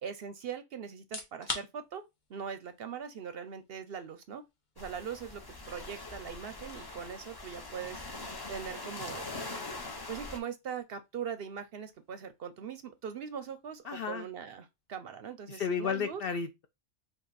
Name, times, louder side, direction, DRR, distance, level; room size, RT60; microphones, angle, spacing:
voice 1, 0.0-2.0 2.3-4.4 4.8-5.4 5.7-8.0 8.5-9.3 10.1-16.2, right 7 dB, 60° right, 0.7 m, -41 dB
sound 1, 1.0-15.8, left 3 dB, 40° left, 1.0 m, -50 dB
sound 2, 4.8-10.4, left 2 dB, 25° left, 0.6 m, -42 dB
voice 2, 13.9-14.3 15.5-16.7, left 6 dB, 60° left, 0.6 m, -33 dB
5.3 x 2.4 x 4.0 m
omnidirectional pair, 1.3 m